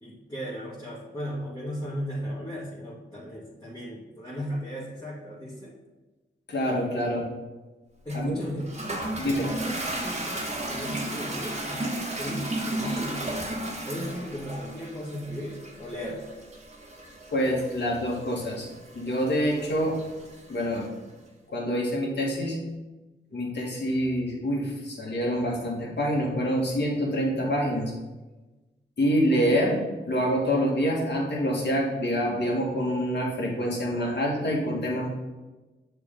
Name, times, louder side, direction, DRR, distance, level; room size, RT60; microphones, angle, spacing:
voice 1, 0.0-5.7 8.1-8.7 9.5-16.2, equal, 20° left, -9 dB, 2.2 m, -36 dB
voice 2, 6.5-7.3 8.1-8.4 9.2-9.5 17.3-18.7 18.9-20.0 20.5-20.9 21.5-22.6 23.3-27.9 29.0-35.1, equal, 60° left, -2 dB, 1.9 m, -26 dB
Toilet flush, 8.1-20.9, right 1 dB, 35° right, 1.3 m, -35 dB
6.7 x 3.5 x 5.3 m, 1.2 s
cardioid pair, 50°, 20 cm